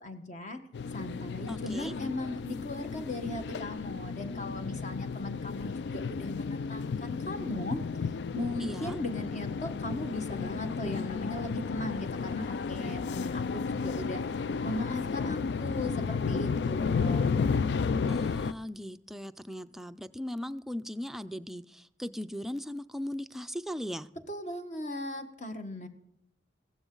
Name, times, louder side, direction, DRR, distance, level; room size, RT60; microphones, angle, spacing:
voice 1, 0.0-0.6 0.9-7.8 8.3-14.2 14.6-17.4 24.3-25.9, left 1 dB, 40° left, 7 dB, 1.4 m, -37 dB
sound 1, 0.7-18.5, left 5 dB, 65° left, 0.4 m, -33 dB
voice 2, 1.5-1.9 8.6-9.0 18.1-24.1, equal, ahead, 9 dB, 0.4 m, -38 dB
16.0 x 12.5 x 3.9 m, 0.78 s
head